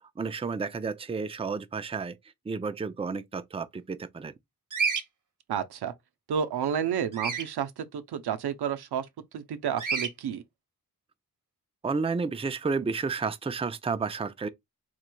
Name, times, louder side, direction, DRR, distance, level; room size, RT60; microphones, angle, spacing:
voice 1, 0.2-2.2 2.5-4.3 11.8-14.5, right 4 dB, 15° right, 0.5 m, -31 dB
Bird vocalization bird call bird song, 4.7-5.0 7.1-7.5 9.8-10.1, right 5 dB, 50° right, 1.0 m, -28 dB
voice 2, 5.5-5.9 6.3-9.1 9.3-10.4, right 8 dB, 75° right, 0.6 m, -30 dB
3.9 x 3.1 x 2.2 m
cardioid pair, 45°, 39 cm